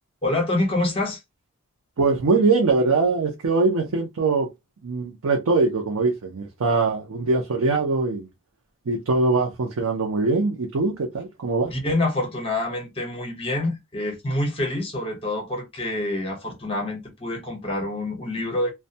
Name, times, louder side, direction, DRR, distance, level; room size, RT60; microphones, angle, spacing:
voice 1, 0.2-1.2 11.7-18.7, left 2 dB, 25° left, 0.8 m, -26 dB
voice 2, 2.0-4.5 4.8-8.3 8.8-11.8, right 3 dB, 85° right, 0.5 m, -22 dB
2.2 x 2.1 x 2.6 m
head